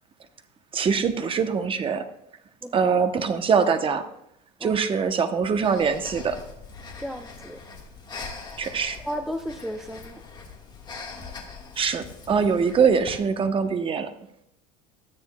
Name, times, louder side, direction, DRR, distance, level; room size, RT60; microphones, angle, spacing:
voice 1, 0.7-2.0 2.7-4.0 4.6-6.4 8.6-9.0 11.8-14.1, right 6 dB, 25° right, 9 dB, 0.8 m, -23 dB
Breathing, 5.6-13.3, left 4 dB, 20° left, 1.5 m, -42 dB
voice 2, 7.0-7.6 9.1-10.2, equal, ahead, 6 dB, 0.4 m, -34 dB
13.0 x 9.3 x 2.2 m, 0.75 s
supercardioid pair, 115°, 20 cm